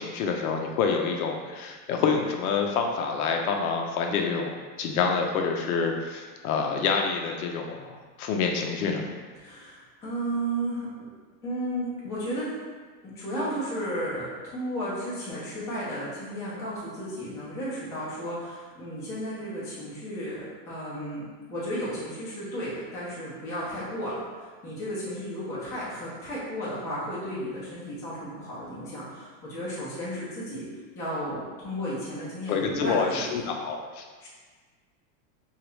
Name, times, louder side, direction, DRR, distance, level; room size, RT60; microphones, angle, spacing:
voice 1, 0.0-9.1 32.5-34.0, left 5 dB, 65° left, 2 dB, 0.5 m, -27 dB
voice 2, 9.4-10.9 11.4-12.5 13.0-30.7 30.9-33.5 34.2-34.3, equal, 5° left, -10 dB, 0.4 m, -33 dB
2.9 x 2.4 x 3.0 m, 1.4 s
supercardioid pair, 135°, 50 cm